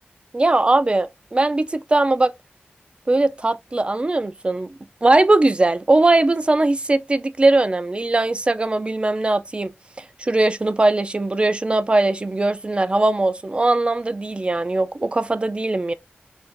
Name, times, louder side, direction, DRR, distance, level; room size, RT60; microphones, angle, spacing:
voice 1, 0.3-2.3 3.1-4.7 5.0-9.7 10.2-15.9, right 2 dB, 30° right, 0.3 m, -20 dB
2.6 x 2.4 x 3.7 m
wide cardioid pair, 95°, 4 cm